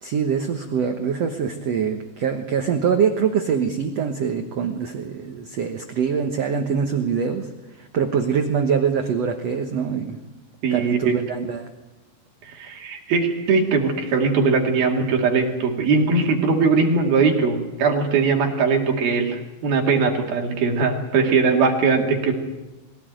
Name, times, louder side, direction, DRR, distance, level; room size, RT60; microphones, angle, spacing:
voice 1, 0.0-7.5 7.8-10.2 10.7-11.7, right 6 dB, 80° right, 6 dB, 1.4 m, -24 dB
voice 2, 10.6-11.2 12.5-22.4, right 4 dB, 60° right, 2 dB, 4.1 m, -20 dB
22.0 x 16.5 x 9.2 m, 1.1 s
omnidirectional pair, 4.9 m